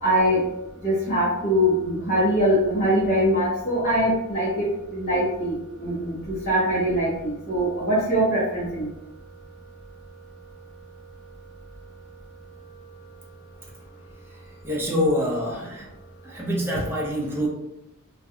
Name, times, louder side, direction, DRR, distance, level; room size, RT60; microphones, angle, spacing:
voice 1, 0.0-0.4 0.8-8.9, equal, 50° left, -9 dB, 0.8 m, -23 dB
voice 2, 14.3-15.9 16.2-17.5, equal, 10° right, -3 dB, 0.5 m, -26 dB
2.4 x 2.2 x 2.6 m, 0.92 s
head